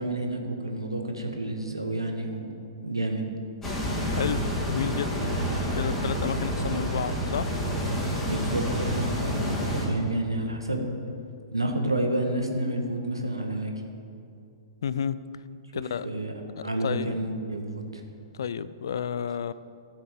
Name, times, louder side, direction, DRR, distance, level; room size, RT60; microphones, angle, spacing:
voice 1, 0.0-2.5 2.8-3.2 8.2-10.9 11.5-13.7 15.7-16.3 16.6-18.0, right 1 dB, 85° right, 3 dB, 1.7 m, -30 dB
sound 1, 3.6-9.9, equal, 15° left, 2.7 m, -28 dB
voice 2, 4.7-5.3 5.7-7.5 14.8-15.2 15.7-16.1 16.6-17.1 18.4-19.5, left 7 dB, 60° left, 16 dB, 0.5 m, -31 dB
14.5 x 8.0 x 6.6 m, 2.5 s
figure-of-eight pair, 110°, 2 cm